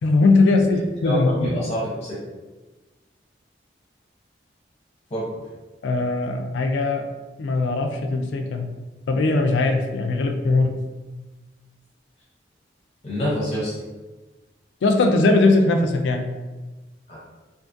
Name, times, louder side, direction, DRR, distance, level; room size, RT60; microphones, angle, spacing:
voice 1, 0.0-1.5 5.8-7.0 7.4-8.7 9.1-10.7 14.8-16.3, left 3 dB, 85° left, 4 dB, 0.3 m, -20 dB
voice 2, 1.0-2.2 5.1-5.2 13.0-13.7 17.1-17.3, left 1 dB, 35° left, -8 dB, 0.6 m, -26 dB
2.5 x 2.4 x 2.5 m, 1.2 s
head